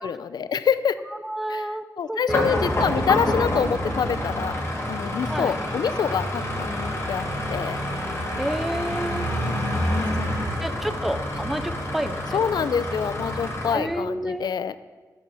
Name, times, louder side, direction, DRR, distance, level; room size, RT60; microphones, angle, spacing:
voice 1, 0.0-1.0 1.5-1.7 2.0-7.8 9.5-11.0 12.3-14.8, left 7 dB, 80° left, 14 dB, 0.5 m, -27 dB
voice 2, 1.1-2.8 3.2-3.3 5.3-5.5 8.4-9.3 10.6-12.7 13.7-14.5, right 1 dB, ahead, 11 dB, 0.5 m, -30 dB
sound 1, 2.3-13.7, left 1 dB, 40° left, 2.8 m, -27 dB
14.0 x 7.2 x 7.7 m, 1.3 s
wide cardioid pair, 180°, 7 cm